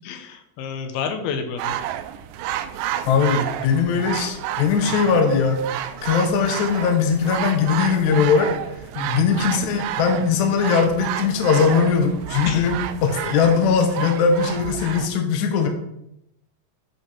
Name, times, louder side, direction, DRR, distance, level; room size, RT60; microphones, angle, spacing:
voice 1, 0.0-1.8 9.0-9.3 12.5-12.7, left 6 dB, 85° left, 6 dB, 2.7 m, -29 dB
sound 1, 1.6-15.1, right 11 dB, 85° right, 2.0 m, -30 dB
voice 2, 3.0-8.5 9.1-15.7, left 5 dB, 70° left, 4 dB, 1.9 m, -20 dB
8.3 x 4.2 x 5.6 m, 0.82 s
omnidirectional pair, 4.3 m